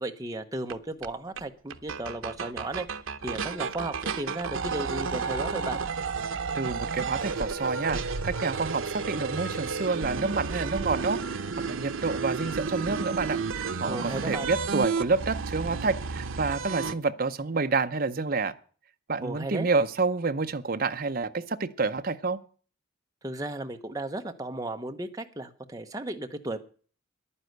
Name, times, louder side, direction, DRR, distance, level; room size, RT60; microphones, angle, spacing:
voice 1, 0.0-2.9 3.2-5.8 13.9-14.5 19.2-19.7 23.2-26.6, right 2 dB, 15° right, 5 dB, 0.9 m, -35 dB
sound 1, 0.7-0.8 1.0-1.1 1.4-1.5 1.7-16.9, right 5 dB, 85° right, 0.8 m, -32 dB
voice 2, 6.5-11.2 11.7-18.5 19.1-22.4, right 4 dB, 45° right, 9 dB, 0.7 m, -28 dB
10.5 x 9.8 x 7.9 m, 0.43 s
head